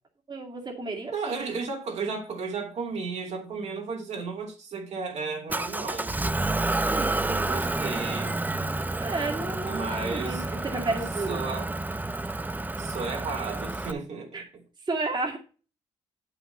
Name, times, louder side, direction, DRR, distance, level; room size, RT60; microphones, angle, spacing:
voice 1, 0.3-1.5 6.8-7.3 9.0-11.4 14.3-14.4 14.8-15.4, right 3 dB, 35° right, 2.3 m, -32 dB
voice 2, 1.1-6.1 7.3-8.4 9.7-10.4 11.3-11.7 12.8-14.4, right 4 dB, 60° right, 2.8 m, -34 dB
Motor vehicle (road) / Engine, 5.5-13.9, right 2 dB, 15° right, 0.7 m, -29 dB
8.0 x 5.8 x 5.4 m
supercardioid pair, 55°, 13 cm